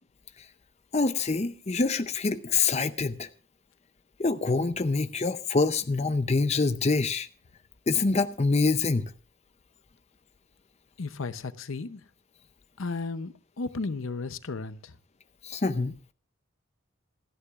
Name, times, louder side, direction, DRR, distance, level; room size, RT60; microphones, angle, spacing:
voice 1, 0.9-3.3 4.2-7.3 7.9-9.1 15.4-15.9, left 3 dB, 30° left, 0.5 m, -25 dB
voice 2, 11.0-12.0 12.8-14.9, left 3 dB, 65° left, 0.7 m, -34 dB
27.5 x 9.8 x 2.4 m
head